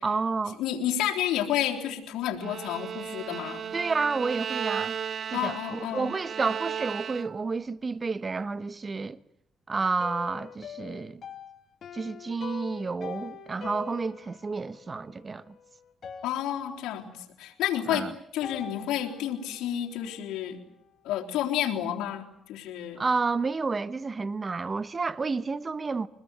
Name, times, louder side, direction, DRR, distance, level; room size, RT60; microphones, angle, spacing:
voice 1, 0.0-0.6 3.7-4.9 5.3-9.2 9.7-11.2 11.9-15.6 17.9-18.1 23.0-26.1, right 4 dB, 30° right, 1.0 m, -30 dB
voice 2, 0.6-3.7 5.3-6.2 16.2-20.6 21.0-23.0, left 11 dB, 90° left, 3.7 m, -30 dB
Bowed string instrument, 2.4-7.6, right 8 dB, 55° right, 1.0 m, -35 dB
sound 1, 9.8-15.6 16.0-17.2 18.4-20.6, left 7 dB, 55° left, 2.5 m, -44 dB
24.0 x 21.0 x 9.7 m
cardioid pair, 90°, 0 cm